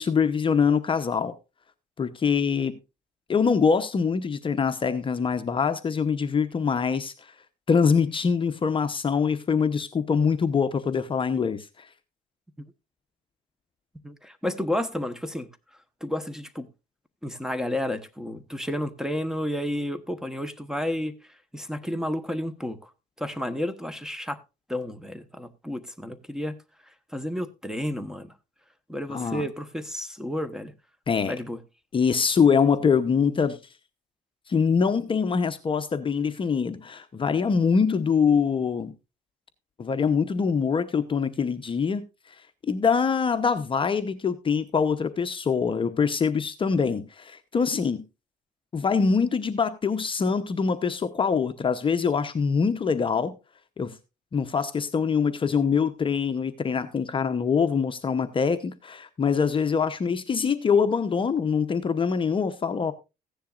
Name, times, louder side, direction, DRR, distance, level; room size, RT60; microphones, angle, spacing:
voice 1, 0.0-1.3 2.0-2.8 3.3-7.3 7.7-11.9 29.1-29.4 31.1-31.4 31.9-33.6 34.5-38.9 39.8-42.0 42.7-48.0 48.7-53.4 53.8-54.0 54.3-62.9, left 6 dB, 30° left, 0.8 m, -24 dB
voice 2, 14.0-15.5 16.0-16.7 17.2-21.1 21.5-22.9 23.2-24.4 24.7-26.6 27.1-28.3 28.9-30.7 31.3-31.6, left 1 dB, 5° right, 1.1 m, -31 dB
15.5 x 10.0 x 2.5 m
cardioid pair, 110°, 17 cm